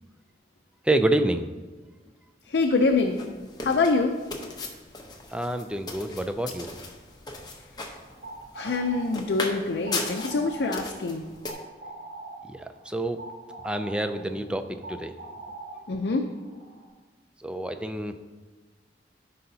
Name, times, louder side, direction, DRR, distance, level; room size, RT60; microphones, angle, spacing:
voice 1, 0.8-1.5 5.3-6.7 12.4-13.2 13.6-15.1 17.4-18.1, right 1 dB, 5° right, 7 dB, 0.4 m, -27 dB
voice 2, 2.5-3.2 3.6-4.1 8.6-11.3 15.9-16.2, left 3 dB, 70° left, 3 dB, 0.5 m, -25 dB
sound 1, 2.7-11.5, left 3 dB, 25° left, 0.9 m, -38 dB
sound 2, 8.0-16.9, right 2 dB, 55° right, 1.6 m, -43 dB
13.5 x 5.5 x 2.8 m, 1.3 s
head